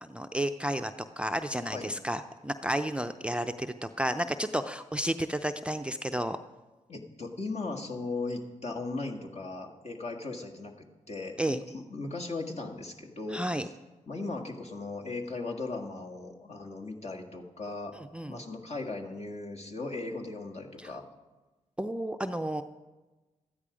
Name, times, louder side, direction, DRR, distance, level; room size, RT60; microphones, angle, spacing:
voice 1, 0.0-6.4 11.4-11.6 13.3-13.7 18.0-18.4 20.8-20.9 21.8-22.6, right 1 dB, 10° right, 9 dB, 0.5 m, -32 dB
voice 2, 6.9-13.4 14.1-18.0 18.3-21.1, left 3 dB, 50° left, 1 dB, 1.7 m, -37 dB
13.0 x 9.9 x 5.0 m, 1.2 s
supercardioid pair, 45°, 14 cm